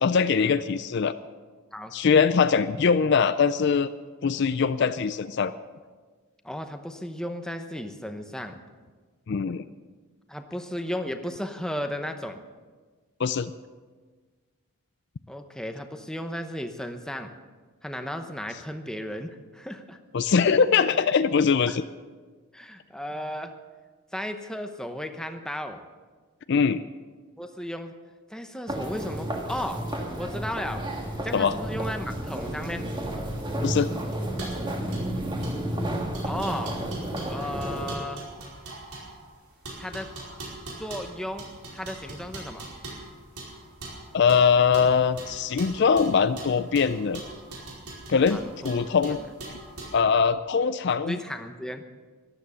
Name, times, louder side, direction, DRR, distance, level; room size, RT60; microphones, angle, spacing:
voice 1, 0.0-1.1 1.9-3.9 4.2-5.5 9.3-9.6 13.2-13.5 20.1-21.8 26.5-26.8 31.3-31.5 33.6-33.9 44.1-47.2 48.1-49.2 49.9-51.1, left 6 dB, 50° left, 13 dB, 0.4 m, -22 dB
voice 2, 6.4-8.6 10.3-12.4 15.3-17.3 17.8-20.0 21.7-21.8 22.5-23.5 24.1-25.8 27.4-27.9 28.3-29.8 30.1-30.8 31.2-32.9 36.2-36.8 37.3-38.3 39.8-40.1 40.8-42.7 48.3-49.3 51.1-51.8, equal, 5° left, 6 dB, 0.8 m, -35 dB
sound 1, 28.7-38.0, right 1 dB, 20° right, 1.6 m, -31 dB
sound 2, 31.6-50.0, right 2 dB, 85° right, 4.9 m, -42 dB
14.0 x 12.0 x 6.9 m, 1.4 s
head